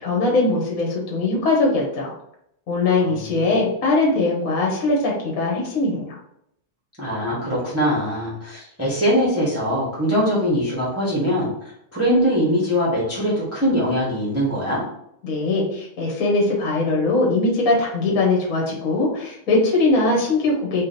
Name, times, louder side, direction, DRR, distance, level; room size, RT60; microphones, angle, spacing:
voice 1, 0.0-2.1 2.7-6.2 15.2-20.8, left 2 dB, 45° left, -2 dB, 1.4 m, -21 dB
voice 2, 3.0-3.5 7.0-11.5 11.9-14.8, equal, 10° right, -7 dB, 1.0 m, -22 dB
3.8 x 3.1 x 4.2 m, 0.76 s
omnidirectional pair, 2.3 m